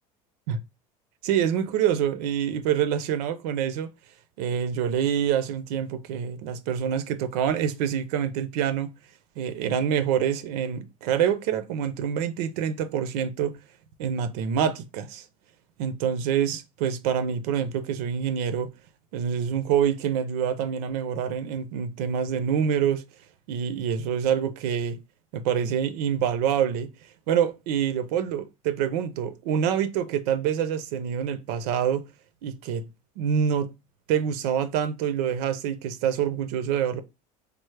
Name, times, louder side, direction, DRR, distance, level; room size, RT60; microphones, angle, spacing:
voice 1, 1.2-3.9 4.4-8.9 9.4-13.6 14.0-15.2 15.8-18.7 19.1-23.0 23.5-25.0 25.3-26.9 27.3-32.0 32.4-32.9 33.2-33.7 34.1-37.0, right 8 dB, 75° right, 0.5 m, -26 dB
3.2 x 2.0 x 3.2 m
supercardioid pair, 105°, 20 cm